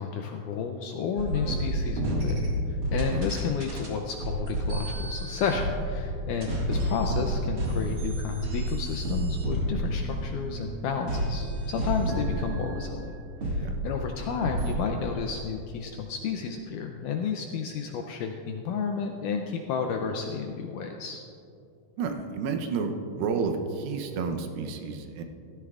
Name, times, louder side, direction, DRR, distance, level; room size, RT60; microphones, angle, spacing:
voice 1, 0.0-2.5 2.9-13.1 13.4-21.2, left 6 dB, 80° left, 3 dB, 1.9 m, -32 dB
sound 1, 1.2-3.9 4.2-13.1 13.4-14.2 14.4-14.8, right 1 dB, 45° right, 2.2 m, -30 dB
voice 2, 22.0-25.2, right 5 dB, 80° right, 5 dB, 2.6 m, -31 dB
16.0 x 13.0 x 2.4 m, 2.6 s
omnidirectional pair, 4.2 m